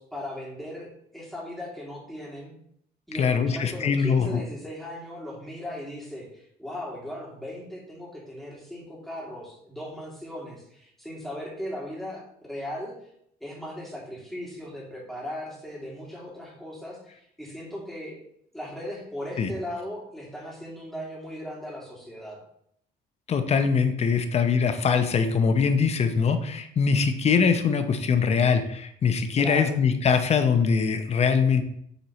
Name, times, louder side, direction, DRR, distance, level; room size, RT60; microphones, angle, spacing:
voice 1, 0.0-2.5 3.1-12.9 13.4-18.2 18.5-22.4 29.4-29.8, left 1 dB, ahead, -5 dB, 2.7 m, -37 dB
voice 2, 3.1-4.4 19.4-19.5 23.3-31.6, left 6 dB, 40° left, 8 dB, 0.7 m, -22 dB
8.1 x 4.3 x 3.1 m, 0.70 s
cardioid pair, 110°, 17 cm